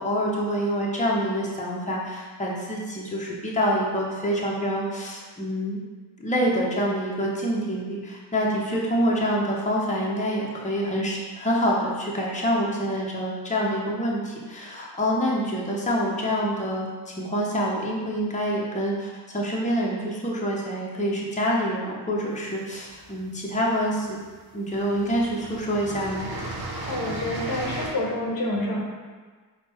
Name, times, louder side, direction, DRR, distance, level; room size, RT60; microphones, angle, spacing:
voice 1, 0.0-5.8 6.2-24.2 24.5-26.3, equal, 15° left, -4 dB, 1.0 m, -26 dB
sound 1, 22.5-23.4 24.2-24.4 24.7-27.9, right 2 dB, 60° right, 1.0 m, -35 dB
voice 2, 26.9-28.8, left 1 dB, 55° left, -3 dB, 1.0 m, -28 dB
4.3 x 2.4 x 4.3 m, 1.4 s
cardioid pair, 45°, 42 cm